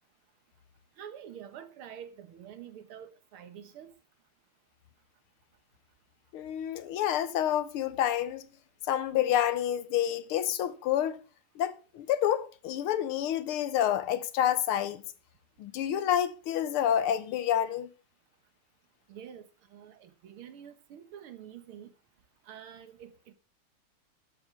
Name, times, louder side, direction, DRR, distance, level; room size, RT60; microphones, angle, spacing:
voice 1, 1.0-3.9 19.1-21.9 22.5-23.3, right 9 dB, 80° right, 2.1 m, -47 dB
voice 2, 6.3-8.5 8.8-11.2 11.6-15.0 15.6-17.9, left 10 dB, 85° left, 1.8 m, -28 dB
13.0 x 7.1 x 5.2 m
omnidirectional pair, 2.3 m